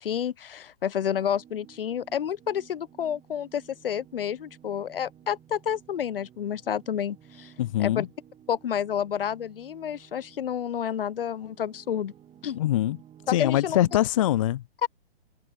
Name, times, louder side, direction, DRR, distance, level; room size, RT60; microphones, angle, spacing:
voice 1, 0.0-7.5 7.8-8.1 8.5-12.1 12.4-12.6 13.3-13.8 14.8-14.9, left 9 dB, 60° left, 0.7 m, -30 dB
sound 1, 1.0-14.0, right 10 dB, 20° right, 7.8 m, -54 dB
voice 2, 7.6-8.1 12.6-13.0 13.3-14.6, left 13 dB, 35° left, 0.4 m, -23 dB
figure-of-eight pair, 120°, 31 cm